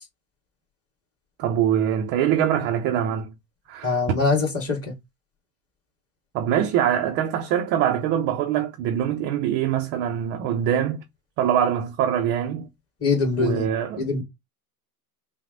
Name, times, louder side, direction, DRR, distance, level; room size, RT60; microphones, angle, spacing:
voice 1, 1.4-3.3 3.7-4.0 6.3-11.0 11.4-12.7 13.4-14.0, right 9 dB, 25° right, 0.3 m, -23 dB
voice 2, 3.8-5.0 13.0-13.7 14.0-14.2, left 4 dB, 30° left, 2.3 m, -23 dB
5.8 x 2.1 x 3.8 m
hypercardioid pair, 95°, 48 cm